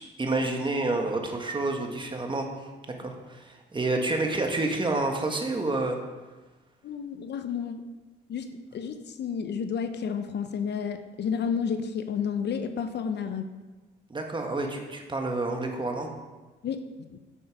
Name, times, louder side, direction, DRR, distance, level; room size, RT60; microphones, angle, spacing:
voice 1, 0.2-6.0 14.1-16.1, right 2 dB, 25° right, 2 dB, 1.5 m, -29 dB
voice 2, 6.8-7.8 8.3-13.5 16.6-16.8 17.1-17.2, left 7 dB, 60° left, 9 dB, 0.8 m, -31 dB
7.8 x 7.6 x 5.2 m, 1.2 s
cardioid pair, 90°, 20 cm